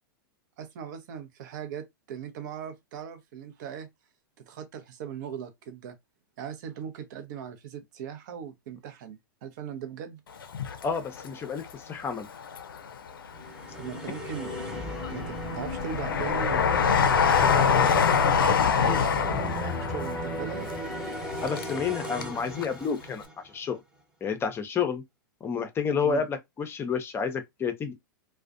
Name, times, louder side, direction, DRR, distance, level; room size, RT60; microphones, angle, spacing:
voice 1, 0.6-3.9 4.4-6.0 6.4-10.2 13.7-14.5 15.1-18.4 18.8-20.7 26.0-26.3, right 8 dB, 55° right, 0.6 m, -39 dB
Train, 10.4-11.7 12.1-13.1 13.6-22.4 22.6-22.7, left 6 dB, 80° left, 0.4 m, -26 dB
voice 2, 10.8-12.3 18.8-19.0 21.4-23.2 23.5-23.8 24.2-25.0 25.4-27.9, left 6 dB, 20° left, 0.5 m, -30 dB
sound 1, 13.3-23.6, equal, 5° right, 0.9 m, -36 dB
2.4 x 2.1 x 2.4 m
hypercardioid pair, 105°, 11 cm